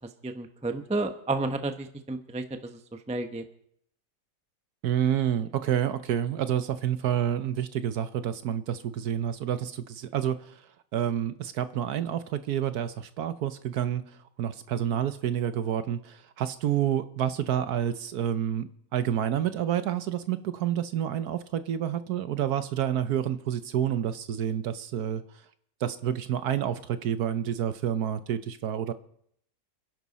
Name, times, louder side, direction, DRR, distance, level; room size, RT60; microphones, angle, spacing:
voice 1, 0.2-2.8 3.1-3.4, right 2 dB, 5° right, 7 dB, 0.5 m, -31 dB
voice 2, 4.8-10.4 10.9-14.0 14.4-25.2 25.8-28.9, right 10 dB, 65° right, 12 dB, 1.2 m, -29 dB
29.0 x 11.0 x 4.1 m, 0.69 s
omnidirectional pair, 2.0 m